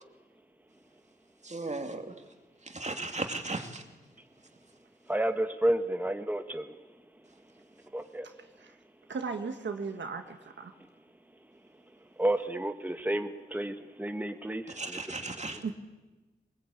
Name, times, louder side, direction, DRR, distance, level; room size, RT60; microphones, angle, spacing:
voice 1, 1.4-2.2 2.6-3.8 14.7-15.6, right 2 dB, 40° right, 5 dB, 2.7 m, -36 dB
voice 2, 5.1-6.7 7.9-8.3 12.2-15.0, right 1 dB, 10° right, 7 dB, 1.5 m, -31 dB
voice 3, 9.1-10.7 15.6-15.7, right 5 dB, 80° right, 6 dB, 1.7 m, -36 dB
21.5 x 21.0 x 8.6 m, 1.2 s
cardioid pair, 50°, 19 cm